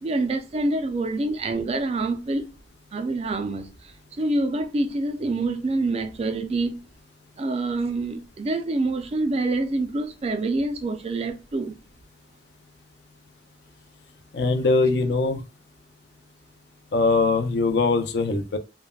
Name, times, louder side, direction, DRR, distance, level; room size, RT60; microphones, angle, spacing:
voice 1, 0.0-2.4 2.9-6.8 7.4-11.8, right 2 dB, 35° right, 0.3 m, -26 dB
voice 2, 14.3-15.4 16.9-18.6, left 3 dB, 60° left, 0.4 m, -21 dB
3.2 x 2.0 x 2.2 m
head